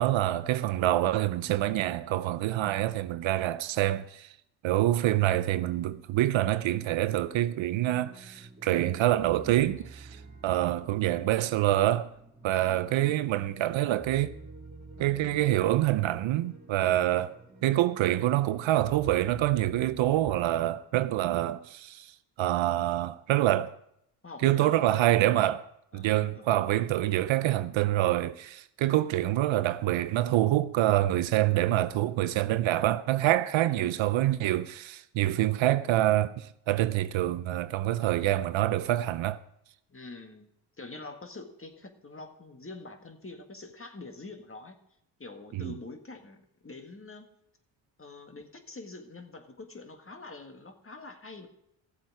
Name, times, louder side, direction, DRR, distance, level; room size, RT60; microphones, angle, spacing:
voice 1, 0.0-4.3 4.6-12.1 12.4-14.4 15.0-22.1 22.4-23.8 24.4-25.7 25.9-39.4 45.5-45.8, right 14 dB, 65° right, 0.6 m, -26 dB
sound 1, 6.6-20.8, right 3 dB, 35° right, 2.9 m, -49 dB
voice 2, 12.5-13.2 24.2-25.0 25.9-26.5 33.6-34.1 39.9-40.5 40.8-44.8 45.2-47.3 48.0-51.5, left 3 dB, 25° left, 1.8 m, -45 dB
14.5 x 7.6 x 4.8 m
supercardioid pair, 50°, 49 cm